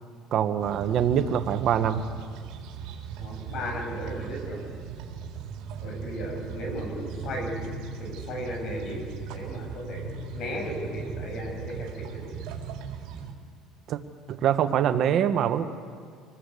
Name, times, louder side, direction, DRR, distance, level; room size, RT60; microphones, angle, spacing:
voice 1, 0.3-2.0 13.9-14.0 14.3-15.6, right 9 dB, 50° right, 9 dB, 1.2 m, -24 dB
sound 1, 0.6-13.3, right 6 dB, 70° right, 4.1 m, -38 dB
voice 2, 3.2-4.6 5.8-7.5 8.0-10.0 10.3-12.3, left 1 dB, 50° left, 2 dB, 7.6 m, -35 dB
26.0 x 20.0 x 8.4 m, 2.1 s
cardioid pair, 140°, 0 cm